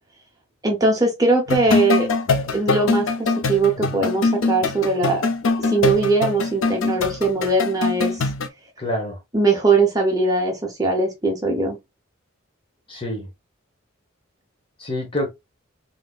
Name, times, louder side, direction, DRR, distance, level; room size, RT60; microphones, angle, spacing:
voice 1, 0.6-2.1 2.5-5.2 5.6-8.2 9.3-11.8, right 3 dB, 15° right, 0.9 m, -20 dB
sound 1, 1.5-8.5, left 3 dB, 75° left, 0.5 m, -23 dB
voice 2, 8.8-9.2 12.9-13.3 14.8-15.3, left 1 dB, 25° left, 0.9 m, -27 dB
3.6 x 2.7 x 2.4 m
head